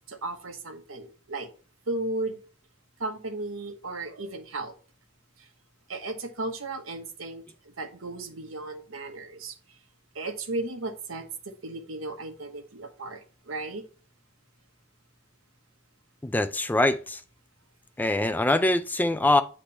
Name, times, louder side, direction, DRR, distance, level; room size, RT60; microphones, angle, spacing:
voice 1, 0.0-1.5 1.9-2.4 3.0-4.8 5.4-5.5 5.9-9.5 10.1-13.8, right 2 dB, 80° right, 1.2 m, -35 dB
voice 2, 16.2-17.2 18.0-19.4, left 2 dB, 10° left, 0.3 m, -23 dB
8.6 x 3.3 x 4.2 m
head